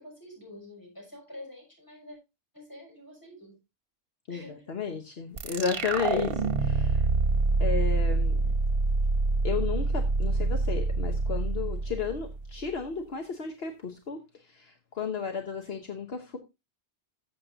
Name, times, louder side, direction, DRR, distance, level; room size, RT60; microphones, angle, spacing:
voice 1, 0.0-2.2 2.5-3.6 4.3-4.7 8.4-8.8 11.6-11.8, left 1 dB, 15° left, 6.3 m, -48 dB
voice 2, 4.7-7.1 7.6-8.4 9.4-16.4, left 6 dB, 65° left, 1.3 m, -33 dB
sound 1, 5.4-12.6, right 3 dB, 55° right, 1.1 m, -26 dB
14.0 x 7.6 x 2.7 m
omnidirectional pair, 1.2 m